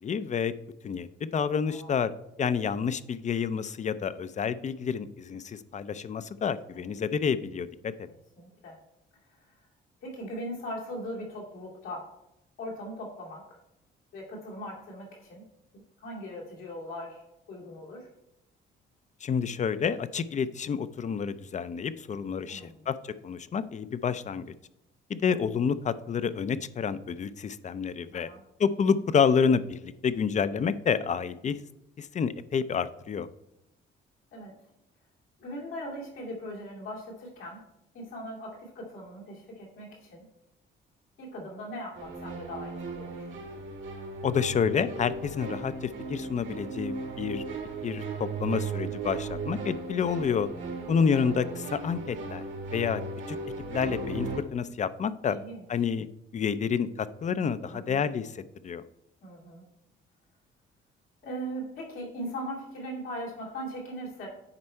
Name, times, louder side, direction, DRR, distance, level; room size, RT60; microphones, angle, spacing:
voice 1, 0.0-0.5 0.8-2.1 2.4-7.9 19.2-24.5 25.1-28.3 28.6-31.6 32.0-33.3 44.2-47.4 47.8-50.5 50.9-52.4 52.7-53.0 53.3-53.4 53.7-55.4 55.7-56.1 56.3-58.8, left 6 dB, 35° left, 14 dB, 0.5 m, -29 dB
voice 2, 1.7-2.0 2.5-2.7 6.5-6.9 8.4-8.8 9.3-9.6 10.0-12.1 12.6-13.6 14.1-15.5 16.0-17.2 17.5-18.1 22.5-22.9 25.3-25.4 28.1-28.4 34.3-34.6 35.4-37.6 37.9-40.2 41.2-43.3 51.1-51.5 55.3-55.6 57.7-58.0 59.2-59.6 61.2-64.3, equal, 85° left, -3 dB, 2.4 m, -40 dB
sound 1, 41.9-54.4, right 3 dB, 75° right, 2.0 m, -36 dB
9.8 x 4.3 x 4.4 m, 0.87 s
cardioid pair, 90°, 20 cm